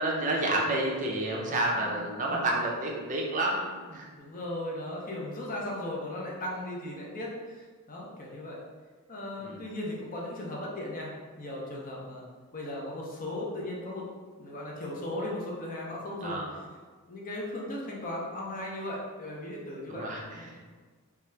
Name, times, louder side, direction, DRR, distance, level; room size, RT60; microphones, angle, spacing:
voice 1, 0.0-4.1 9.4-9.6 16.2-16.5 19.9-20.6, right 1 dB, 35° right, -2 dB, 0.4 m, -30 dB
voice 2, 1.8-2.5 4.2-8.6 9.1-12.2 12.5-14.1 14.4-16.4 17.1-20.0, left 1 dB, 40° left, -3 dB, 0.6 m, -37 dB
2.8 x 2.3 x 3.2 m, 1.4 s
head